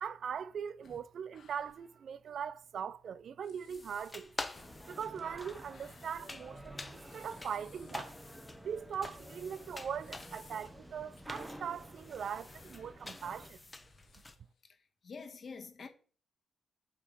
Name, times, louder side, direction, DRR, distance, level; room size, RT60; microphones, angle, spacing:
voice 1, 0.0-4.3 4.9-8.1 8.6-13.6, right 7 dB, 65° right, 0.4 m, -41 dB
sound 1, 0.8-2.0 2.3-2.4 3.0-3.1 3.4-8.1 8.5-8.6 9.2-10.8 11.2-11.3 11.7-12.2 12.5-14.6, left 5 dB, 75° left, 1.8 m, -63 dB
sound 2, 3.7-14.4, left 2 dB, 20° left, 0.9 m, -48 dB
sound 3, 4.5-13.5, equal, 5° right, 1.0 m, -52 dB
voice 2, 15.0-15.9, left 5 dB, 50° left, 1.4 m, -46 dB
7.2 x 3.5 x 5.2 m
cardioid pair, 95°, 0 cm